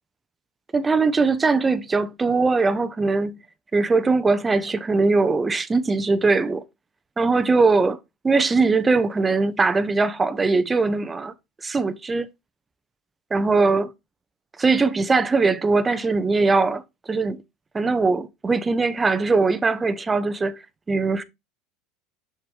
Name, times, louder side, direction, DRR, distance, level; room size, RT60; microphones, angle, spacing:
voice 1, 0.7-3.4 3.7-6.7 7.2-8.0 8.2-11.3 11.6-12.3 13.3-13.9 14.6-17.4 17.7-20.6 20.9-21.2, right 3 dB, 20° right, 0.7 m, -21 dB
6.8 x 5.9 x 3.2 m
hypercardioid pair, 75°, 0 cm